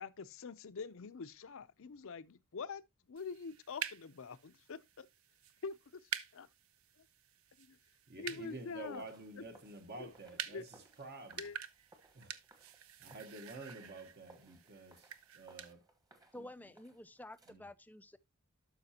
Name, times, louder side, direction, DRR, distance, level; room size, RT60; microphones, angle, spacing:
voice 1, 0.0-2.8 3.1-5.1 5.6-6.0 6.3-6.5 7.0-7.1 7.6-7.8 8.2-9.0 9.4-9.5 10.0-10.1 10.5-10.6 11.4-11.6, left 5 dB, 65° left, 0.6 m, -45 dB
sound 1, 3.2-15.7, right 9 dB, 70° right, 0.7 m, -48 dB
voice 2, 8.1-11.5 12.1-12.4 13.0-15.8 16.3-16.5 17.5-17.6, right 2 dB, 50° right, 1.2 m, -50 dB
sound 2, 8.4-17.5, right 2 dB, 15° right, 1.3 m, -66 dB
voice 3, 16.3-18.2, left 1 dB, 10° left, 0.4 m, -51 dB
12.0 x 5.7 x 2.8 m
head